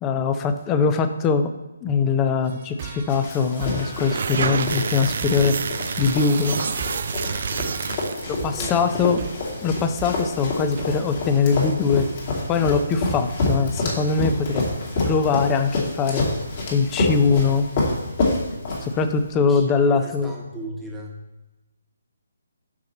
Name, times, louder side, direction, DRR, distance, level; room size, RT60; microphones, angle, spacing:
voice 1, 0.0-1.5 1.8-5.6 6.0-6.6 8.3-9.2 9.6-12.1 12.5-14.7 15.0-16.3 16.7-17.7 18.8-20.3, left 5 dB, 20° left, 9 dB, 0.5 m, -22 dB
sound 1, 2.4-10.8, right 6 dB, 40° right, 1.0 m, -38 dB
Run, 3.1-19.2, left 2 dB, 40° left, 2.3 m, -28 dB
sound 2, 3.9-8.4, right 6 dB, 55° right, 0.4 m, -28 dB
voice 2, 8.2-9.1 9.5-9.9 18.5-18.9 19.4-21.2, equal, 5° right, -3 dB, 1.2 m, -37 dB
6.0 x 5.7 x 4.2 m, 1.0 s
figure-of-eight pair, 145°, 0 cm